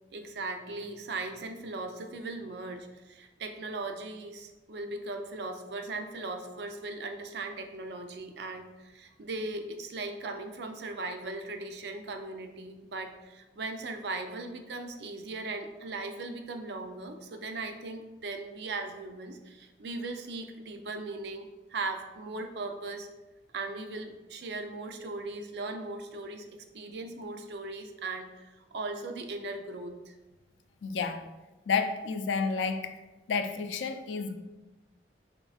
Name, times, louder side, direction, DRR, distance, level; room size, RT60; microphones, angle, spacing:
voice 1, 0.1-23.1 23.5-30.1, right 3 dB, 65° right, 5 dB, 0.4 m, -38 dB
voice 2, 30.8-31.2 31.7-32.9 33.3-34.4, left 5 dB, 90° left, 8 dB, 0.4 m, -30 dB
4.4 x 3.4 x 2.3 m, 1.1 s
head